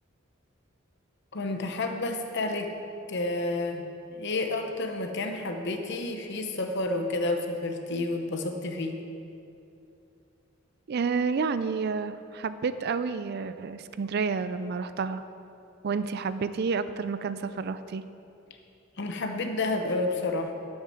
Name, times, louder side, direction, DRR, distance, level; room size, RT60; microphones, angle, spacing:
voice 1, 1.3-2.7 3.1-3.8 4.1-9.0 19.0-20.5, left 2 dB, 55° left, 5 dB, 0.9 m, -30 dB
voice 2, 10.9-15.2 15.8-18.0, right 5 dB, 50° right, 12 dB, 0.4 m, -30 dB
8.1 x 6.6 x 7.8 m, 2.7 s
head